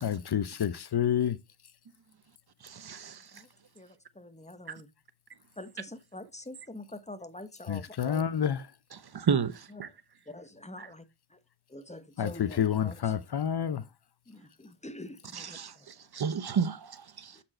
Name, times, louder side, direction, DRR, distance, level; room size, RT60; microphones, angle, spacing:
voice 1, 0.0-1.4 7.7-8.7 12.2-13.8, left 9 dB, 60° left, 0.6 m, -29 dB
voice 2, 2.6-3.2 9.3-9.9 15.3-15.7 16.1-17.3, right 6 dB, 55° right, 0.8 m, -31 dB
voice 3, 3.8-4.9 5.6-8.2 9.7-9.9 10.3-11.0 11.3-11.4 11.7-12.9 14.3-15.9 17.3-17.4, left 1 dB, 15° left, 1.1 m, -45 dB
7.7 x 4.4 x 4.3 m
cardioid pair, 50°, 44 cm